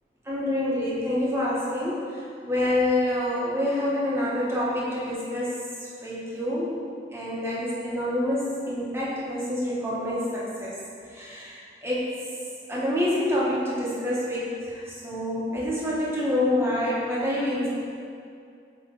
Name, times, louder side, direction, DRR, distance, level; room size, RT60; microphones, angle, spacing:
voice 1, 0.3-2.0 2.4-5.5 6.0-6.7 7.1-10.7 11.1-12.1 12.7-17.7, left 1 dB, 15° right, -8 dB, 1.4 m, -27 dB
8.5 x 3.5 x 4.6 m, 2.3 s
head